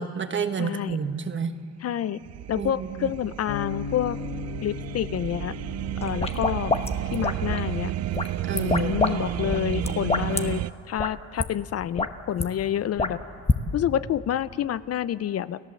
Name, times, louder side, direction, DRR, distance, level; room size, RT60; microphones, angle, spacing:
voice 1, 0.0-1.5 2.6-3.1 8.4-9.2, right 6 dB, 40° right, 9 dB, 1.3 m, -30 dB
voice 2, 0.6-1.0 1.8-2.2 2.5-4.2 4.6-5.5 6.0-6.7 7.1-7.9 8.5-13.2 13.7-15.6, left 10 dB, 55° left, 16 dB, 0.6 m, -28 dB
sound 1, 1.9-10.7, right 13 dB, 60° right, 0.5 m, -32 dB
sound 2, 3.5-9.7, left 9 dB, 70° left, 1.2 m, -39 dB
sound 3, 6.0-7.7 8.1-9.1 9.4-10.4 11.0-11.1 11.4-11.5 11.8-12.4 13.0-13.6, left 3 dB, 20° left, 1.2 m, -26 dB
30.0 x 15.5 x 7.6 m, 2.3 s
cardioid pair, 90°, 30 cm